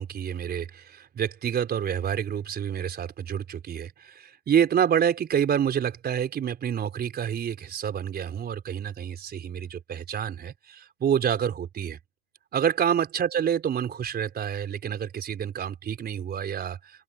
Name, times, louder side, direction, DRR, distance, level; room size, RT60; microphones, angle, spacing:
voice 1, 0.0-12.0 12.5-16.8, right 8 dB, 20° right, 4.7 m, -28 dB
open air
hypercardioid pair, 115°, 44 cm